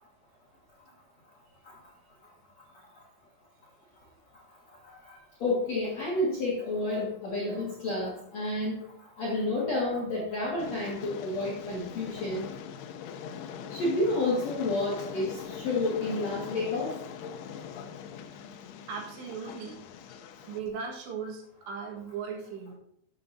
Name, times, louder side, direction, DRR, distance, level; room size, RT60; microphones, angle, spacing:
voice 1, 5.1-8.8 9.2-12.5 13.7-16.9, left 2 dB, 60° left, -5 dB, 1.8 m, -30 dB
Train, 10.6-20.6, left 7 dB, 85° left, 2.3 m, -42 dB
voice 2, 18.9-19.8 20.5-22.7, right 6 dB, 70° right, 0 dB, 3.6 m, -38 dB
12.0 x 8.1 x 2.6 m, 0.70 s
omnidirectional pair, 5.4 m